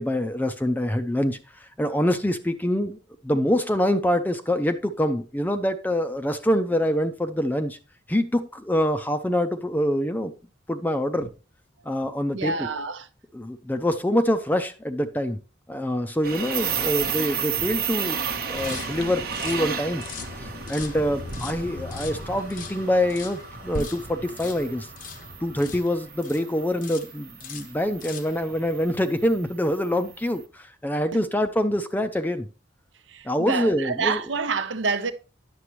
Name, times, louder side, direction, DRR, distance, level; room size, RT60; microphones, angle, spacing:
voice 1, 0.0-3.0 3.2-7.8 8.1-10.3 10.7-11.3 11.9-12.7 13.3-15.4 15.7-18.2 18.5-20.0 20.4-24.9 25.4-32.5 33.2-34.2, equal, 10° left, 0.4 m, -25 dB
voice 2, 12.3-13.1 31.1-31.2 33.1-35.1, right 4 dB, 80° right, 0.8 m, -27 dB
sound 1, 16.2-30.3, right 6 dB, 55° right, 1.0 m, -33 dB
sound 2, 18.6-26.5 26.8-27.1 27.4-28.4, left 4 dB, 45° left, 0.7 m, -39 dB
9.8 x 6.9 x 3.0 m
head